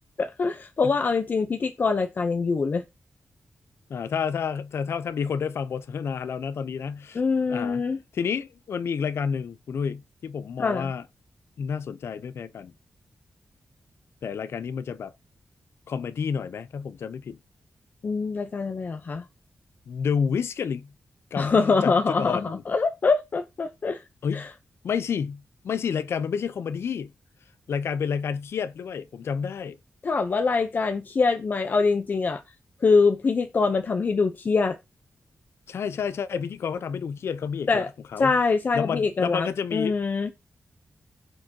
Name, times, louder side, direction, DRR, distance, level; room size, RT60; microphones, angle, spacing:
voice 1, 0.2-2.8 7.1-8.0 10.6-10.9 18.0-19.2 21.4-24.0 24.3-24.5 30.0-32.4 32.8-34.8 37.7-37.9 38.2-40.3, left 4 dB, 45° left, 0.8 m, -24 dB
voice 2, 3.9-7.2 7.5-7.8 8.1-11.0 11.6-12.7 14.2-15.1 15.9-17.4 19.9-20.9 21.3-22.6 24.2-24.5 24.8-27.1 27.7-29.8 35.7-37.8 38.1-38.3 38.7-39.9, left 6 dB, 80° left, 0.8 m, -30 dB
16.5 x 6.5 x 2.9 m
wide cardioid pair, 140°, 4 cm